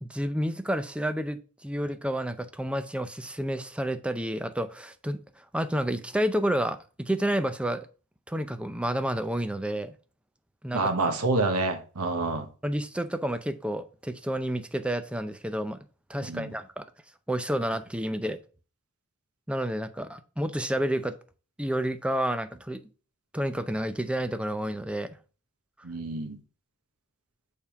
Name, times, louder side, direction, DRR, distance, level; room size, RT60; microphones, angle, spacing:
voice 1, 0.0-7.9 8.3-9.9 10.6-10.8 12.6-15.8 16.1-16.8 17.3-18.4 19.5-21.2 21.6-22.8 23.3-25.2, right 1 dB, 5° right, 0.5 m, -30 dB
voice 2, 10.7-12.5 16.3-16.5 25.8-26.4, right 3 dB, 85° right, 1.2 m, -27 dB
6.7 x 3.6 x 5.8 m
head